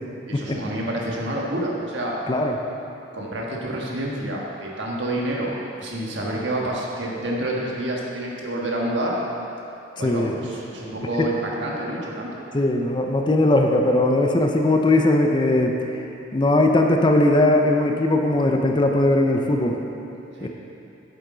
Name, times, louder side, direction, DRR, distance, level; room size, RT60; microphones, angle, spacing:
voice 1, 0.3-2.1 3.1-9.2 10.0-12.4 20.4-20.5, right 1 dB, 70° right, -3 dB, 1.4 m, -28 dB
voice 2, 10.0-10.3 11.2-11.3 12.5-15.8 16.3-19.8 20.4-20.5, left 1 dB, 25° left, 3 dB, 0.5 m, -19 dB
8.2 x 7.9 x 3.9 m, 2.9 s
head